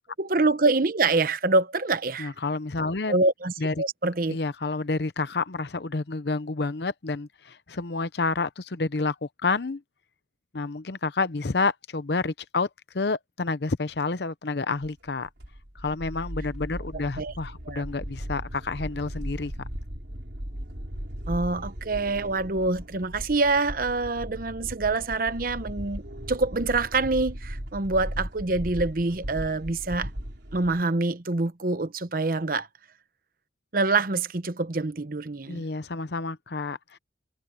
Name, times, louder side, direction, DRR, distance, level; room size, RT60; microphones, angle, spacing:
voice 1, 0.2-2.3 3.1-4.4 17.2-17.3 17.7-17.8 21.3-30.1 30.5-32.7 33.7-35.7, right 3 dB, 50° right, 0.9 m, -26 dB
voice 2, 2.2-3.2 3.6-3.7 4.3-9.8 10.5-12.7 12.9-15.3 15.8-19.5 35.5-37.0, left 3 dB, 65° left, 0.8 m, -29 dB
sound 1, 14.8-30.8, equal, 75° right, 3.7 m, -37 dB
head